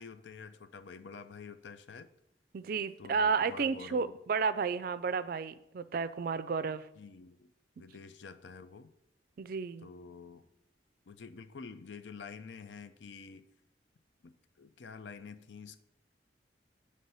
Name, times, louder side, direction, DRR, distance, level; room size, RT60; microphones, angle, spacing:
voice 1, 0.0-2.1 3.0-4.2 7.0-7.5 7.8-8.9 9.8-10.4 11.1-13.4 14.2-15.8, left 5 dB, 80° left, 11 dB, 0.5 m, -48 dB
voice 2, 2.5-6.8 9.4-9.9, right 5 dB, 55° right, 13 dB, 0.4 m, -32 dB
8.0 x 3.3 x 5.4 m, 0.83 s
head